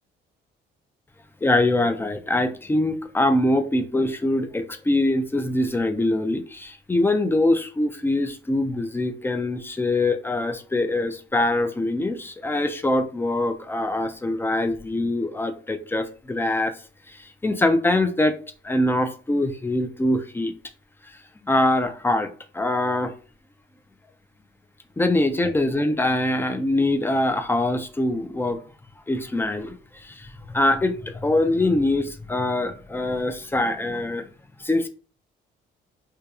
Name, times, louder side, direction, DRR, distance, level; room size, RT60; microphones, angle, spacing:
voice 1, 1.4-16.7 17.1-18.4 18.6-20.5 21.4-23.1 25.0-28.6 29.1-34.3 34.6-34.9, left 1 dB, 10° left, 0.3 m, -23 dB
2.8 x 2.3 x 2.3 m
cardioid pair, 90°, 20 cm